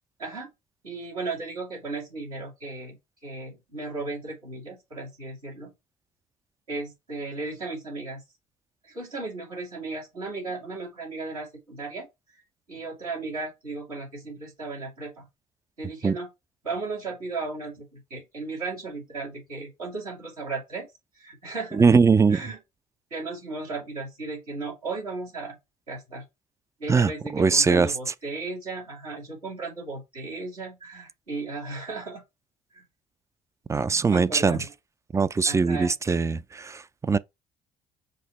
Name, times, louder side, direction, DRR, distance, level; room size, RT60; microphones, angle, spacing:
voice 1, 0.2-0.5 0.8-3.0 3.2-5.7 6.7-8.2 8.8-12.1 12.7-15.2 15.8-16.3 16.6-20.9 21.1-21.8 22.3-22.6 23.1-25.6 25.9-26.2 26.8-32.2 32.7-32.8 34.0-34.7 35.5-35.9, right 3 dB, 85° right, 2.2 m, -35 dB
voice 2, 21.7-22.4 26.9-27.9 33.7-34.6 35.1-37.2, right 5 dB, 15° right, 0.3 m, -21 dB
5.3 x 2.0 x 4.1 m
figure-of-eight pair, 50°, 19 cm